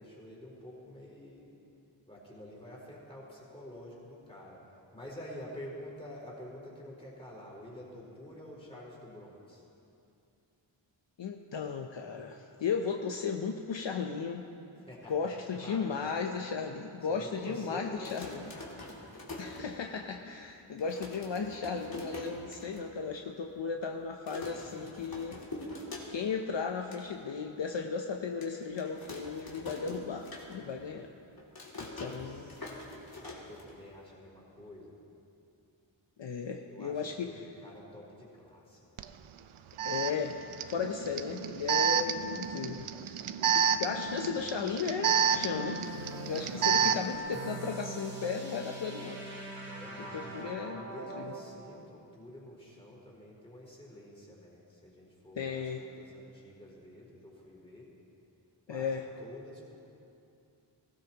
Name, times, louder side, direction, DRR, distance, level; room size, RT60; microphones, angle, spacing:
voice 1, 0.0-1.5 2.1-4.6 4.9-9.7 14.8-16.2 17.0-18.8 32.0-32.6 33.1-35.0 36.7-39.0 41.8-42.2 49.7-57.9 58.7-59.8, left 1 dB, 10° left, -5 dB, 4.0 m, -48 dB
voice 2, 11.2-14.5 15.1-18.4 19.4-25.4 26.1-31.1 31.8-32.5 36.2-37.4 39.8-40.4 40.6-43.2 43.5-45.8 46.3-49.2 50.0-50.8 51.1-51.3 55.4-55.8 58.7-59.1, left 5 dB, 60° left, 3 dB, 0.8 m, -35 dB
sound 1, 17.9-20.2 20.5-20.6 20.8-22.8 23.2-23.3 23.5-23.9 24.3-26.4 26.7-27.0 27.5-27.6 28.4-30.9 31.1-34.1, left 2 dB, 45° left, 2.6 m, -44 dB
Alarm, 39.0-39.1 39.8-47.2, right 7 dB, 75° right, 0.6 m, -30 dB
sound 2, 45.3-51.5, right 1 dB, 45° right, 3.0 m, -42 dB
20.0 x 16.0 x 2.9 m, 2.7 s
wide cardioid pair, 110°, 50 cm